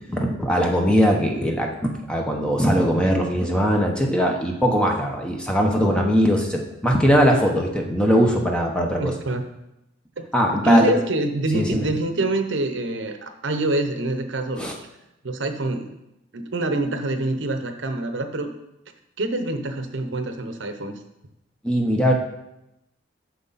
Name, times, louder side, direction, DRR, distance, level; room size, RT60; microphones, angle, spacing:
voice 1, 0.1-9.1 10.3-10.9 11.5-11.8 14.6-14.8 21.6-22.1, equal, 5° left, 1 dB, 0.9 m, -20 dB
voice 2, 9.0-9.4 10.2-10.3 10.5-14.7 15.2-15.9 16.3-18.5 19.2-20.9, right 2 dB, 70° right, 7 dB, 0.8 m, -25 dB
9.4 x 6.4 x 4.1 m, 0.88 s
head